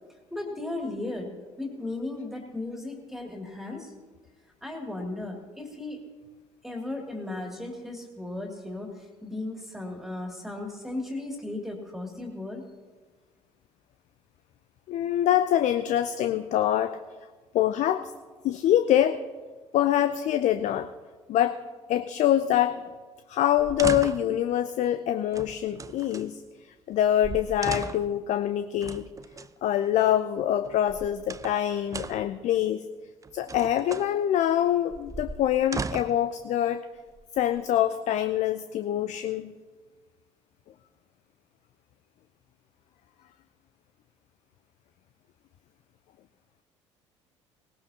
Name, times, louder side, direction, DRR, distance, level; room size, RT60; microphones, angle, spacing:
voice 1, 0.3-1.3 1.6-3.9 4.6-6.0 6.6-12.7, left 2 dB, ahead, 1 dB, 2.7 m, -36 dB
voice 2, 14.9-17.0 17.5-18.1 18.4-19.2 19.7-20.9 21.3-21.6 21.9-22.8 23.3-29.0 29.6-32.8 33.3-36.9 37.4-39.5, left 11 dB, 50° left, 10 dB, 0.6 m, -25 dB
sound 1, 23.6-24.4 25.3-26.3 26.9-27.0 27.2-28.2 28.8-29.5 30.6-31.6 31.9-32.3 33.2-34.1 34.9-36.3 37.1-37.8, right 4 dB, 20° right, 0.6 m, -37 dB
18.5 x 18.5 x 2.9 m, 1.4 s
figure-of-eight pair, 55°, 15 cm